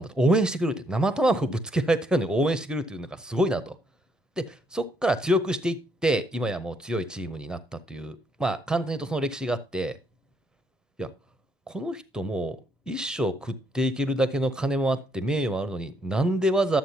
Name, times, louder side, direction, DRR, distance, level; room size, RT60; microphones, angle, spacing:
voice 1, 0.0-3.7 4.4-10.0 11.0-11.1 11.7-12.6 12.9-16.8, right 1 dB, 5° right, 0.6 m, -26 dB
11.0 x 7.5 x 2.7 m
hypercardioid pair, 110°, 30 cm